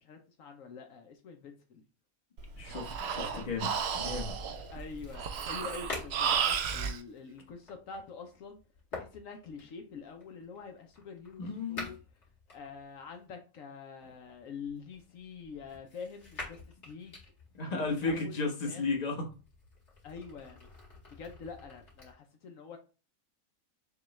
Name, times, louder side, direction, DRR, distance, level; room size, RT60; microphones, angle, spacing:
voice 1, 0.0-1.8 3.1-3.7 4.7-8.6 8.9-12.0 12.5-16.6 16.8-17.2 17.7-18.8 20.0-20.7 21.1-22.8, left 5 dB, 70° left, 1.1 m, -46 dB
Breathing, 2.4-7.0, right 7 dB, 60° right, 0.7 m, -33 dB
voice 2, 2.6-4.3 11.4-11.9 17.5-19.3, left 3 dB, 30° left, 1.2 m, -34 dB
sound 1, 3.3-13.3 14.0-18.1 18.8-22.1, left 2 dB, 55° left, 2.3 m, -49 dB
7.0 x 2.3 x 3.1 m
omnidirectional pair, 1.5 m